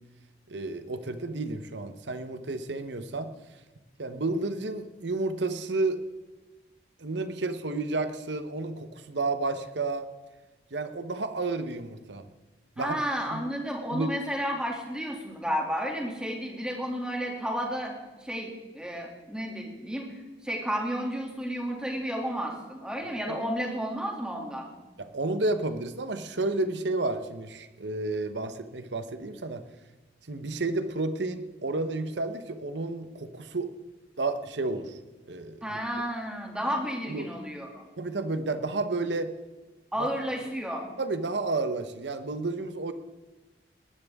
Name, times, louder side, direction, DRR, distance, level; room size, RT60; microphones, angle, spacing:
voice 1, 0.5-3.3 4.0-6.0 7.0-10.1 10.7-12.3 12.8-13.0 13.3-13.4 13.9-14.1 23.3-23.4 25.0-29.6 30.3-33.7 34.2-35.0 35.3-35.8 37.1-37.3 38.0-39.3 40.0-40.1 41.0-42.9, right 2 dB, 85° right, 10 dB, 1.0 m, -31 dB
voice 2, 12.8-20.2 20.4-24.7 35.6-37.8 39.9-40.9, equal, 5° right, 0 dB, 2.6 m, -32 dB
20.5 x 12.5 x 3.6 m, 1.2 s
head